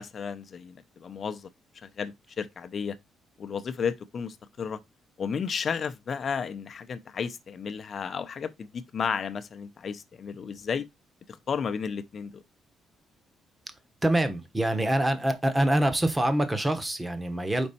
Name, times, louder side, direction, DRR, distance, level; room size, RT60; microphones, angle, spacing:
voice 1, 0.0-1.5 1.8-3.0 3.4-4.8 5.2-10.9 11.3-12.4, left 6 dB, 50° left, 0.7 m, -33 dB
voice 2, 14.0-17.7, right 1 dB, 15° right, 1.2 m, -25 dB
5.3 x 4.2 x 4.2 m
cardioid pair, 90°, 0 cm